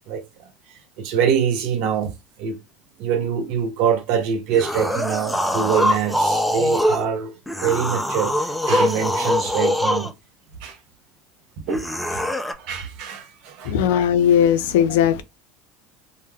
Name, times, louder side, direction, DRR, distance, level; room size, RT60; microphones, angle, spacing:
voice 1, 1.0-2.6 3.0-7.3 7.6-10.1 10.6-10.8 11.7-11.8 12.1-12.2 12.6-13.8, right 8 dB, 65° right, 0.6 m, -24 dB
sound 1, 4.5-7.0 7.5-10.1 11.7-12.5, left 1 dB, 5° left, 0.4 m, -22 dB
voice 2, 13.6-15.2, left 9 dB, 75° left, 0.4 m, -18 dB
2.2 x 2.1 x 3.2 m
hypercardioid pair, 85°, 0 cm